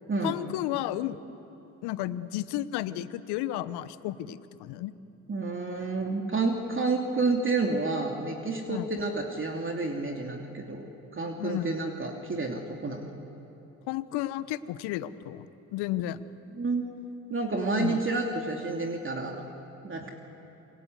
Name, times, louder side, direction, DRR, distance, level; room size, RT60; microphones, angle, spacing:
voice 1, 0.2-1.2 1.8-4.9 8.7-8.9 11.4-11.7 13.9-16.2 17.8-18.0, left 14 dB, 70° left, 15 dB, 1.1 m, -32 dB
voice 2, 5.3-13.1 16.5-16.9 17.3-19.4 19.8-20.1, right 3 dB, 30° right, 2 dB, 3.0 m, -30 dB
28.0 x 22.5 x 8.1 m, 3.0 s
hypercardioid pair, 55°, 41 cm